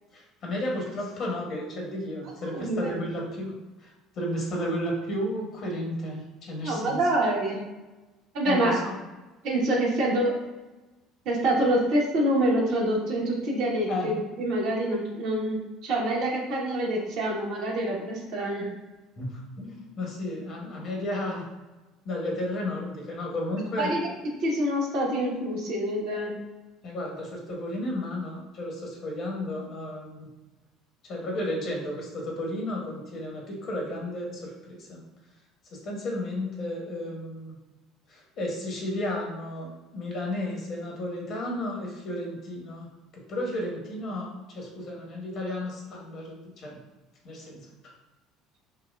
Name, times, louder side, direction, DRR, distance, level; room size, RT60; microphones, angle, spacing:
voice 1, 0.1-3.5 3.8-7.0 8.4-9.0 13.9-14.1 19.2-21.4 22.0-23.9 26.8-30.3 31.0-35.0 35.7-37.6 38.1-42.9 43.1-46.8 47.2-47.9, left 1 dB, 45° left, -1 dB, 1.1 m, -33 dB
voice 2, 2.2-2.9 6.6-7.6 8.3-8.8 9.4-10.5 11.2-18.7 23.8-24.1 24.4-26.4, right 1 dB, 55° right, -2 dB, 1.0 m, -26 dB
5.5 x 2.1 x 2.3 m, 1.1 s
figure-of-eight pair, 60°, 0 cm